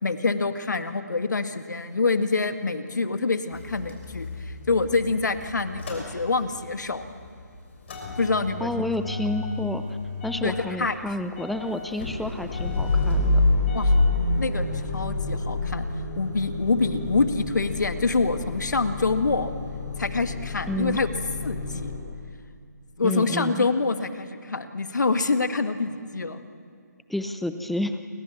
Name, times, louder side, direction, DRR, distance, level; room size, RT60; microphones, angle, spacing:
voice 1, 0.0-7.0 8.2-8.9 10.4-11.0 13.7-13.9 14.4-14.7 14.9-15.9 16.2-19.5 20.0-21.1 21.4-21.9 23.0-26.4, left 3 dB, 75° left, 9 dB, 1.9 m, -26 dB
Motor vehicle (road) / Engine starting / Idling, 3.5-6.7 7.0-22.0, left 2 dB, 40° left, 6.4 m, -28 dB
voice 2, 8.6-9.8 10.2-13.4 20.7-21.0 23.0-23.7 27.1-28.0, left 1 dB, ahead, 9 dB, 0.6 m, -30 dB
28.0 x 25.0 x 7.3 m, 2.3 s
figure-of-eight pair, 160°, 10 cm